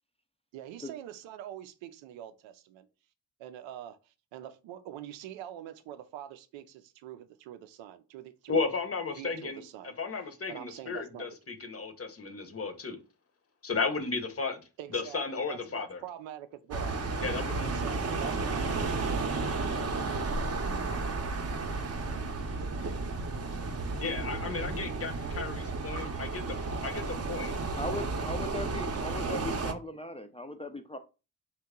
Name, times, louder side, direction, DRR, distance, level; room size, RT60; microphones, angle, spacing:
voice 1, 0.5-2.9 3.4-8.6 9.2-10.0 10.5-11.3 14.8-17.0 17.6-19.4 19.6-19.9, right 11 dB, 80° right, 0.5 m, -45 dB
voice 2, 8.5-9.6 10.0-13.0 13.6-14.6 14.9-16.0 17.2-17.7 24.0-27.5, left 4 dB, 30° left, 0.7 m, -34 dB
sound 1, 16.7-29.7, right 3 dB, 35° right, 0.7 m, -33 dB
voice 3, 27.7-31.0, left 1 dB, 15° left, 0.4 m, -38 dB
2.9 x 2.2 x 3.6 m
hypercardioid pair, 40°, 45 cm